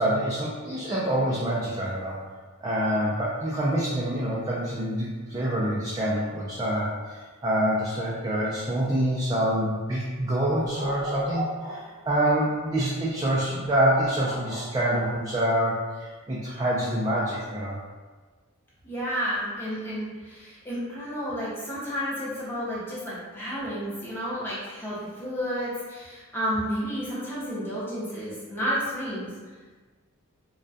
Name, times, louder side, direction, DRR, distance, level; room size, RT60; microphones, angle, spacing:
voice 1, 0.0-2.2 2.6-17.8, right 1 dB, 20° right, -8 dB, 0.3 m, -26 dB
sound 1, 10.7-12.0 13.7-15.5, right 1 dB, 80° left, 1.0 m, -36 dB
voice 2, 18.8-29.3, equal, 10° left, -9 dB, 0.7 m, -31 dB
2.2 x 2.2 x 2.6 m, 1.4 s
head